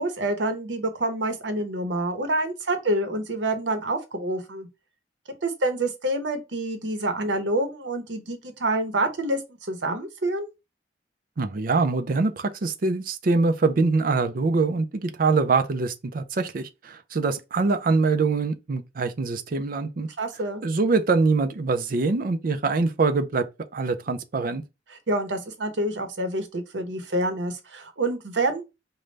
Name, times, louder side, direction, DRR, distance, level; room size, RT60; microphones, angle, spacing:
voice 1, 0.0-4.7 5.4-10.5 20.2-20.6 24.9-28.7, right 1 dB, 85° right, 0.9 m, -27 dB
voice 2, 11.4-20.1 20.6-23.4 23.7-24.6, right 3 dB, 50° right, 0.5 m, -24 dB
5.1 x 2.2 x 3.2 m
head